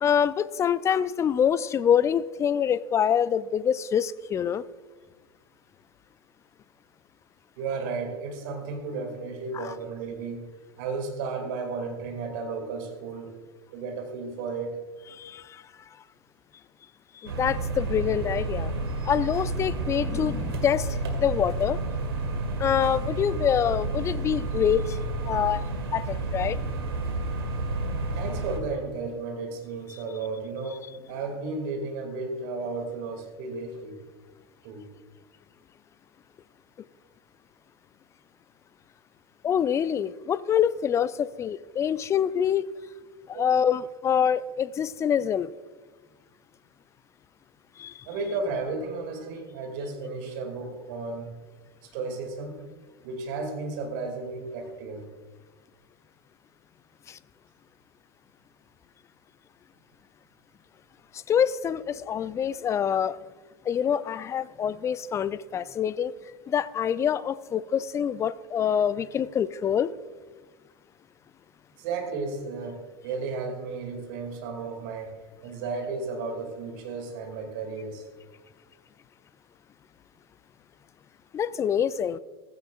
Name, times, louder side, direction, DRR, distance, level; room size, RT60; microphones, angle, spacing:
voice 1, 0.0-4.6 9.5-9.7 15.1-15.6 17.2-18.7 19.0-21.8 22.6-25.0 25.2-25.6 25.9-26.6 39.4-42.7 43.3-45.5 47.8-48.1 57.1-57.2 61.1-63.2 63.7-66.1 66.5-69.9 81.3-82.2, left 8 dB, 20° left, 18 dB, 0.4 m, -25 dB
voice 2, 7.6-10.5 10.8-13.3 13.7-14.8 28.1-34.0 34.6-34.8 43.3-43.6 48.0-51.3 51.8-52.6 53.0-55.0 71.8-75.1 75.4-78.1, right 4 dB, 50° right, 4 dB, 2.6 m, -33 dB
sound 1, 17.3-28.6, right 2 dB, 70° right, 1.9 m, -30 dB
15.5 x 14.5 x 2.5 m, 1.3 s
figure-of-eight pair, 85°, 14 cm